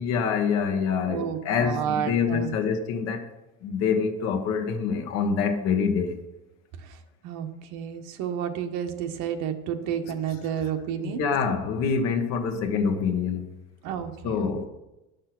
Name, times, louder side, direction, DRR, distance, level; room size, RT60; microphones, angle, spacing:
voice 1, 0.0-3.2 3.6-6.2 11.0-13.5 14.2-14.6, left 6 dB, 60° left, 6 dB, 1.4 m, -26 dB
voice 2, 1.1-2.5 6.8-11.3 13.8-14.6, right 8 dB, 70° right, 6 dB, 1.2 m, -31 dB
11.0 x 6.5 x 6.0 m, 0.98 s
cardioid pair, 170°, 30 cm